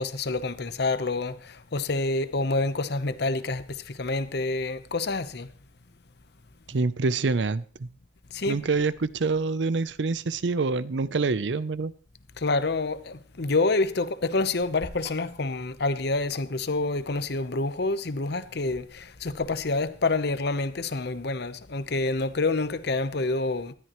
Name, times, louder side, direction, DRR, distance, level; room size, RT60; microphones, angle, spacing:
voice 1, 0.0-5.5 8.3-8.6 12.4-23.7, left 3 dB, 60° left, 0.9 m, -27 dB
voice 2, 6.7-7.9 8.5-11.9, right 4 dB, 75° right, 0.6 m, -26 dB
19.0 x 12.5 x 3.1 m
head